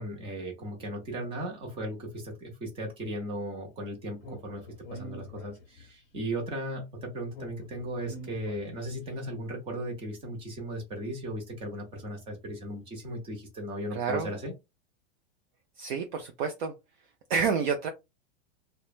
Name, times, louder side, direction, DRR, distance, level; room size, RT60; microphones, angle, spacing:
voice 1, 0.0-14.5, right 1 dB, 15° right, 1 dB, 0.7 m, -37 dB
Speech, 4.2-6.0 7.3-9.1, equal, 30° left, 0.9 m, -44 dB
voice 2, 13.9-14.3 15.8-16.7 17.3-17.9, right 5 dB, 45° right, 4 dB, 0.4 m, -29 dB
3.1 x 2.1 x 2.4 m, 0.23 s
supercardioid pair, 165°, 35 cm